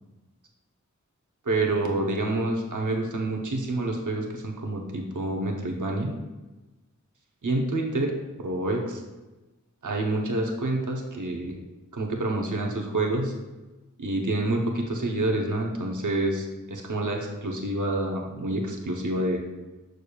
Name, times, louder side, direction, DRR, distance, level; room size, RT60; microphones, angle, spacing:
voice 1, 1.5-6.1 7.4-9.0 9.8-11.6 11.9-13.3 14.0-19.4, right 2 dB, 80° right, 1 dB, 0.9 m, -28 dB
6.8 x 6.4 x 2.3 m, 1.1 s
wide cardioid pair, 50°, 31 cm